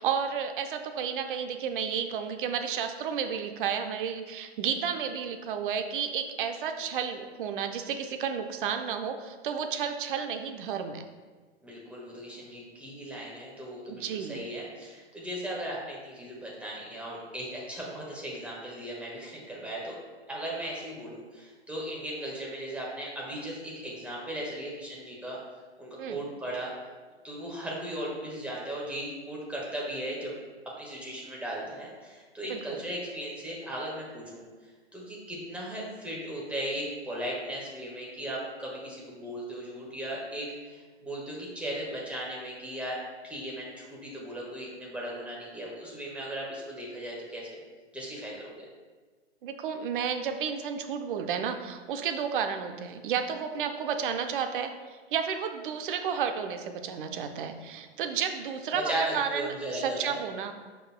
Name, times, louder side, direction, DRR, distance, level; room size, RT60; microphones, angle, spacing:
voice 1, 0.0-11.0 13.9-14.4 26.0-26.2 32.5-32.8 49.4-60.5, right 7 dB, 50° right, 7 dB, 0.7 m, -32 dB
voice 2, 11.6-20.0 20.3-25.4 25.8-26.7 27.2-30.4 30.6-34.4 34.9-47.6 47.9-48.7 58.7-60.1, right 1 dB, 5° right, -4 dB, 1.5 m, -37 dB
12.0 x 4.7 x 2.2 m, 1.4 s
figure-of-eight pair, 115°, 33 cm